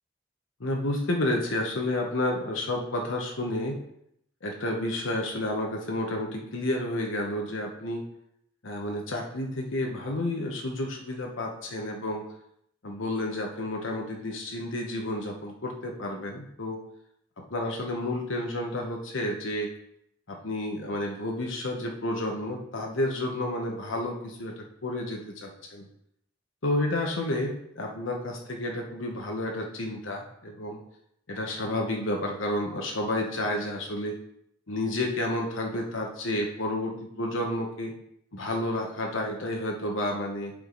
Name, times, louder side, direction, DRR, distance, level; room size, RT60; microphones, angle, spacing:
voice 1, 0.6-3.8 4.4-8.0 8.6-12.2 12.8-16.8 17.4-19.7 20.3-25.8 26.6-30.8 31.3-34.2 34.7-37.9 38.3-40.5, left 1 dB, 90° left, 1 dB, 1.1 m, -30 dB
8.6 x 4.8 x 3.9 m, 0.74 s
head